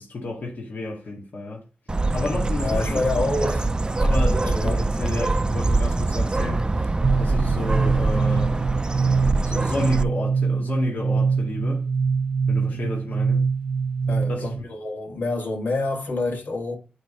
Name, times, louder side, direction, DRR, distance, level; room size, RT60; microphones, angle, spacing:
voice 1, 0.0-1.6 2.1-3.0 4.0-6.9 7.2-8.6 9.4-11.9 12.5-13.5 14.3-14.7, left 2 dB, 60° left, 2.0 m, -31 dB
Bird, 1.9-10.0, right 2 dB, 25° right, 0.6 m, -23 dB
voice 2, 2.6-3.7 4.4-5.2 12.7-12.9 14.1-16.8, left 2 dB, 80° left, 2.4 m, -27 dB
sound 1, 7.0-14.6, right 5 dB, 70° right, 0.9 m, -24 dB
9.2 x 3.5 x 4.4 m
wide cardioid pair, 80°, 3 cm